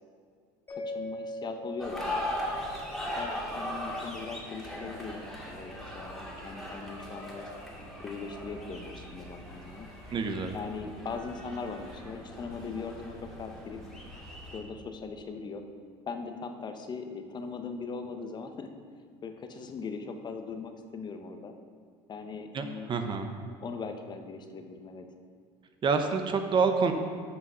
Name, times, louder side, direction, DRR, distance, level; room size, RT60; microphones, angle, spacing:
voice 1, 0.7-2.3 3.2-7.5 8.0-9.9 10.5-13.8 14.5-15.6 16.1-18.7 19.2-21.6 22.1-23.2 23.6-25.1, left 4 dB, 35° left, 6 dB, 0.8 m, -40 dB
Mallet percussion, 0.7-3.7, left 1 dB, 15° left, 1.8 m, -41 dB
sound 1, 1.8-14.6, left 1 dB, ahead, 2.1 m, -39 dB
voice 2, 10.1-10.5 22.5-23.3 25.8-26.9, right 5 dB, 40° right, 6 dB, 0.8 m, -27 dB
7.8 x 5.6 x 5.6 m, 2.1 s
supercardioid pair, 95°, 13 cm